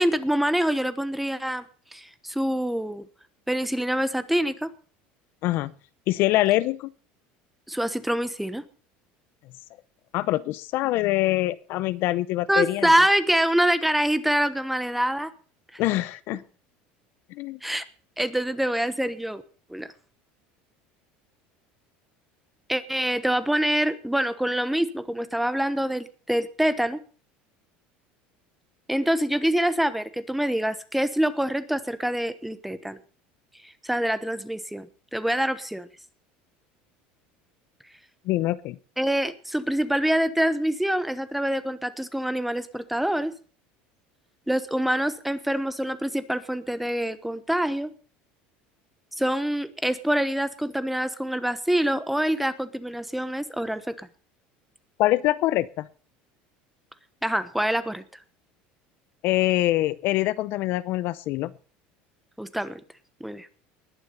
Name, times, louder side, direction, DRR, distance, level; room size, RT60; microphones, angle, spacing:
voice 1, 0.0-1.6 1.9-3.0 3.5-4.7 7.7-8.6 12.5-15.3 17.6-17.8 18.2-19.4 19.7-19.9 22.7-27.0 28.9-33.0 33.6-35.9 39.0-43.3 44.5-47.9 49.2-54.1 57.2-58.0 62.4-62.8 63.2-63.5, right 1 dB, 5° right, 12 dB, 1.1 m, -25 dB
voice 2, 6.1-6.9 10.1-12.9 15.8-16.4 17.3-17.6 38.3-38.8 55.0-55.9 59.2-61.5, left 16 dB, 55° left, 16 dB, 0.6 m, -24 dB
20.0 x 7.1 x 5.7 m, 0.40 s
supercardioid pair, 135°, 4 cm